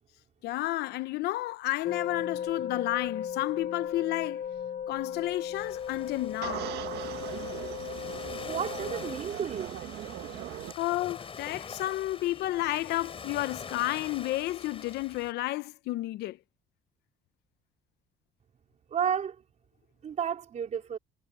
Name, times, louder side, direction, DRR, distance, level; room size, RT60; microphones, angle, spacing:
voice 1, 0.4-4.4 4.9-6.7 10.8-16.4, left 17 dB, 80° left, 0.8 m, -31 dB
sound 1, 1.8-9.2, left 8 dB, 50° left, 7.0 m, -36 dB
sound 2, 5.5-15.3, left 5 dB, 35° left, 4.7 m, -45 dB
sound 3, 6.4-10.7, right 13 dB, 75° right, 1.6 m, -39 dB
voice 2, 8.4-9.8 18.9-19.4 20.0-21.0, right 8 dB, 45° right, 4.4 m, -32 dB
cardioid pair, 110°, 17 cm